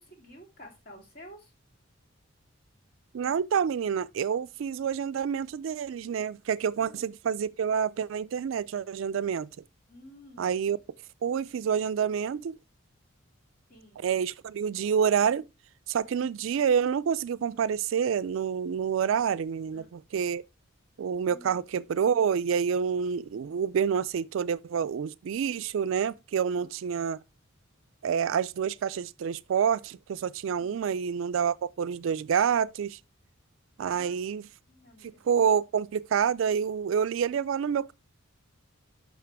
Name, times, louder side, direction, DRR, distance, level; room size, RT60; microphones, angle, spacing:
voice 1, 0.0-1.5 6.8-7.0 9.9-10.6 13.7-14.1 19.7-19.9 21.2-21.6 26.5-26.7 30.6-30.9 33.8-34.2 34.7-35.2, left 1 dB, 45° left, 2.5 m, -51 dB
voice 2, 3.1-9.5 10.4-10.8 11.2-12.6 14.0-15.5 15.9-20.4 21.0-27.2 28.0-33.0 33.8-34.5 35.0-37.9, right 7 dB, 65° right, 0.3 m, -28 dB
5.9 x 5.7 x 4.6 m
head